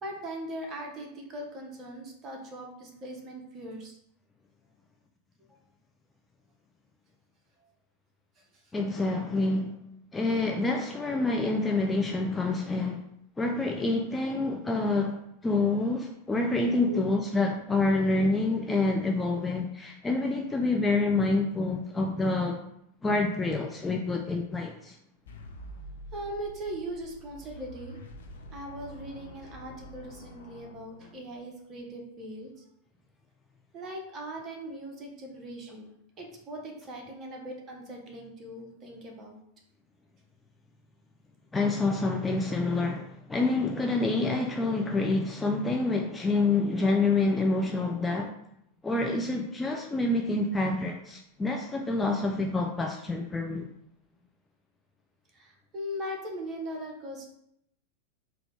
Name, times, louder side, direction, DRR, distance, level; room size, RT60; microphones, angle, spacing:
voice 1, 0.0-3.9 8.4-8.7 16.7-17.1 26.1-28.0 28.5-32.7 33.7-35.9 36.2-39.4 55.3-57.3, right 1 dB, 30° right, 1 dB, 0.9 m, -40 dB
voice 2, 8.7-9.7 10.1-13.0 13.4-15.2 15.4-22.6 23.0-25.0 41.5-48.3 48.8-53.7, left 3 dB, 10° left, 2 dB, 0.3 m, -27 dB
sound 1, 25.3-31.4, equal, 65° left, 0.5 m, -47 dB
3.8 x 2.2 x 3.4 m, 0.77 s
figure-of-eight pair, 90°, 0 cm